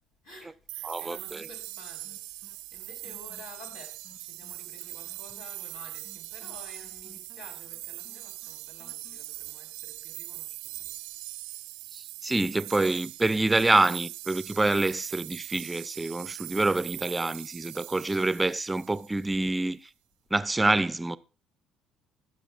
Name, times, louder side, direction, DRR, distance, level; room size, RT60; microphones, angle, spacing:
voice 1, 0.2-11.0, left 1 dB, 85° left, 3.6 m, -51 dB
sound 1, 0.7-19.4, right 18 dB, 70° right, 0.6 m, -41 dB
voice 2, 0.8-1.5 11.9-19.8 20.3-21.2, right 2 dB, 15° right, 0.5 m, -26 dB
sound 2, 1.3-1.8 2.0-9.2, left 3 dB, 30° left, 1.9 m, -57 dB
21.0 x 7.9 x 2.5 m
figure-of-eight pair, 55°, 0 cm